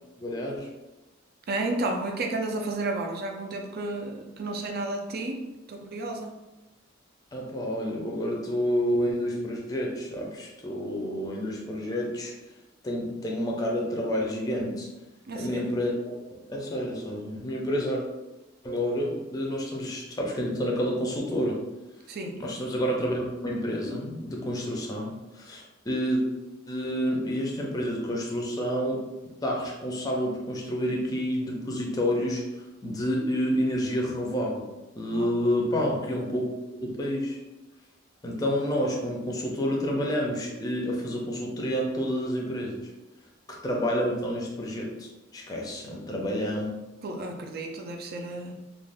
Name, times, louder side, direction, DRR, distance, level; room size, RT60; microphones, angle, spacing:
voice 1, 0.2-0.7 7.3-12.3 12.8-14.9 15.4-16.1 16.5-18.0 18.6-21.6 22.4-26.2 26.7-29.0 29.4-32.5 32.8-34.7 35.0-36.5 36.8-37.4 38.2-42.9 43.6-46.7, equal, 20° left, -1 dB, 0.5 m, -29 dB
voice 2, 1.5-5.4 5.7-6.3 15.3-15.6 22.1-22.4 35.1-35.3 47.0-48.5, right 2 dB, 50° right, 3 dB, 0.4 m, -32 dB
2.5 x 2.3 x 3.3 m, 1.0 s
head